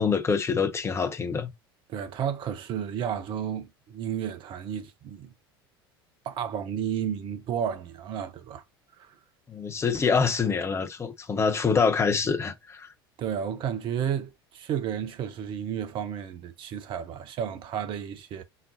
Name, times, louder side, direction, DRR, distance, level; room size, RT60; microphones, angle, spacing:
voice 1, 0.0-1.5 9.5-12.9, left 5 dB, 20° left, 0.8 m, -25 dB
voice 2, 1.9-5.3 6.2-8.6 9.0-9.1 13.2-18.4, right 8 dB, 40° right, 0.6 m, -32 dB
4.0 x 3.7 x 2.7 m
figure-of-eight pair, 70°, 13 cm